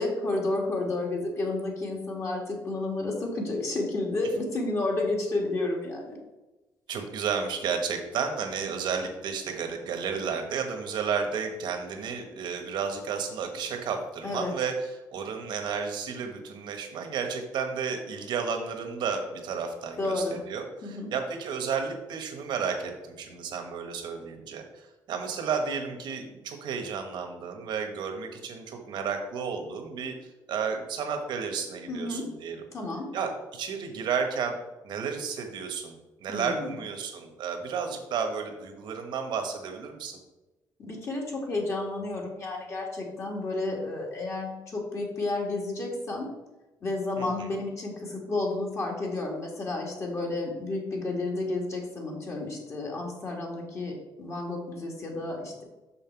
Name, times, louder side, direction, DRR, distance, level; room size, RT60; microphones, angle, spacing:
voice 1, 0.0-6.2 14.2-14.5 20.0-20.4 20.8-21.1 31.9-32.3 32.7-33.1 36.3-36.7 40.8-46.3 46.8-55.6, left 2 dB, 40° left, -1 dB, 1.9 m, -31 dB
voice 2, 6.9-32.6 33.1-34.6 34.8-40.2 47.2-47.5, right 6 dB, 75° right, 5 dB, 1.3 m, -32 dB
6.5 x 5.7 x 4.5 m, 1.1 s
cardioid pair, 140°, 8 cm